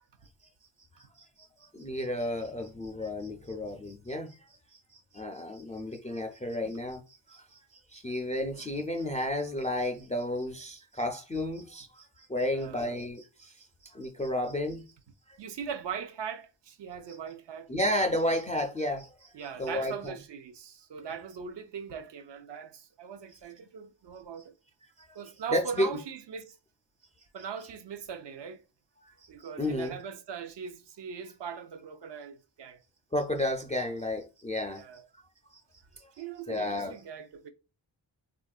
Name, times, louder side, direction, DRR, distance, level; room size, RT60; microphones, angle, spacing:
voice 1, 1.7-4.4 5.1-14.8 17.7-19.3 19.6-20.1 25.0-25.1 25.5-25.9 29.1-29.2 29.6-30.0 33.1-34.8 35.5-35.6 36.0-36.1 36.5-37.0, left 1 dB, 15° left, 0.4 m, -32 dB
voice 2, 12.4-12.9 15.4-17.7 19.3-24.5 25.1-26.6 27.3-28.6 29.3-32.8 34.7-35.0 36.2-37.5, right 7 dB, 65° right, 0.6 m, -40 dB
3.4 x 2.5 x 2.3 m
wide cardioid pair, 80°, 46 cm